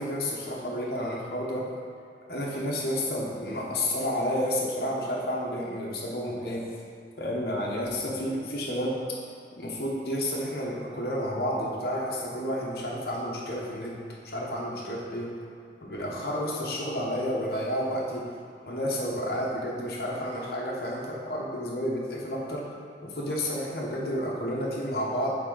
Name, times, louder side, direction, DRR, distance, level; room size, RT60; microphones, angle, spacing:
voice 1, 0.0-1.7 2.3-6.6 7.2-9.0 9.6-13.9 14.2-15.3 15.8-18.3 18.6-22.7 23.0-25.4, equal, 55° left, -4 dB, 1.1 m, -30 dB
8.1 x 3.7 x 3.9 m, 2.3 s
head